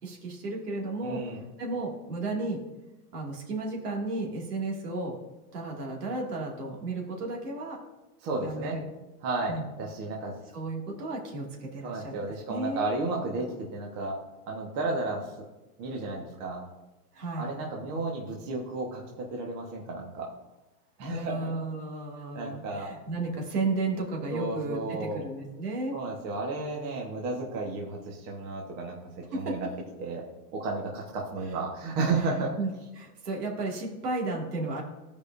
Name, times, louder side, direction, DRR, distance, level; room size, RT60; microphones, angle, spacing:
voice 1, 0.0-2.6 3.1-5.2 5.5-7.8 8.4-8.8 9.5-9.7 10.5-12.2 12.5-12.9 17.1-17.5 21.0-26.0 29.3-29.7 32.1-34.8, right 2 dB, 80° right, -1 dB, 2.4 m, -33 dB
voice 2, 1.0-1.4 8.2-8.8 9.2-10.4 11.8-14.2 14.5-15.3 15.8-16.6 17.4-20.3 21.0-21.5 22.3-22.9 24.3-25.2 25.9-29.7 30.0-30.2 30.5-32.5, right 3 dB, 40° right, -1 dB, 1.5 m, -33 dB
14.5 x 5.2 x 2.7 m, 1.0 s
hypercardioid pair, 135°, 46 cm